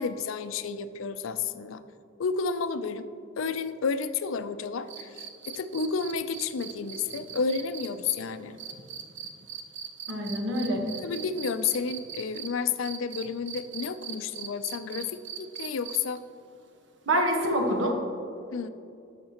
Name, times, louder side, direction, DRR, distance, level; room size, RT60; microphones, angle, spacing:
voice 1, 0.0-1.8 2.2-3.1 3.4-8.6 11.0-15.1 15.4-16.2 18.5-18.7, left 5 dB, 90° left, 12 dB, 0.4 m, -31 dB
sound 1, 4.9-12.5 12.8-16.2 17.8-17.9, right 8 dB, 65° right, 0.7 m, -40 dB
voice 2, 10.1-10.8 17.1-18.0, equal, 80° right, 2 dB, 1.2 m, -26 dB
12.0 x 6.6 x 2.9 m, 2.6 s
head